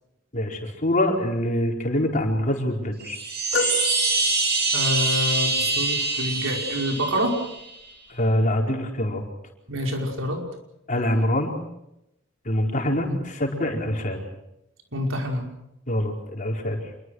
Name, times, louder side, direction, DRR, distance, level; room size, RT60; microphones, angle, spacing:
voice 1, 0.3-3.2 8.1-9.2 10.9-11.6 12.4-14.2 15.9-16.9, left 1 dB, 40° left, 1 dB, 4.7 m, -24 dB
Chime, 3.0-7.7, right 3 dB, 55° right, 7.4 m, -25 dB
sound 1, 3.5-4.9 5.7-5.8, left 3 dB, 65° left, 4.4 m, -30 dB
voice 2, 4.7-7.4 9.7-10.4 13.0-13.2 14.9-15.5, equal, 85° right, 2 dB, 5.5 m, -27 dB
27.0 x 22.5 x 6.5 m, 0.84 s
head